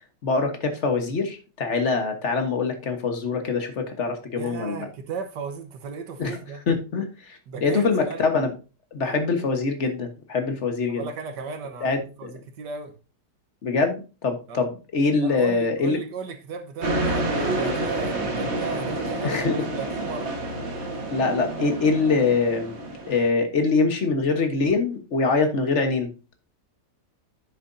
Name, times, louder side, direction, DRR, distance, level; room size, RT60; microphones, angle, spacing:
voice 1, 0.2-4.9 6.2-6.4 6.7-8.5 8.9-11.0 11.8-12.0 13.6-16.0 19.2-19.5 21.1-22.7 23.1-26.1, left 4 dB, 45° left, 1.6 m, -24 dB
voice 2, 4.3-6.6 7.5-8.3 10.9-12.9 14.5-14.7 15.2-19.5 19.8-20.3, right 5 dB, 80° right, 1.8 m, -36 dB
sound 1, 16.8-23.3, right 2 dB, 40° right, 1.7 m, -28 dB
10.0 x 6.8 x 2.7 m
omnidirectional pair, 1.8 m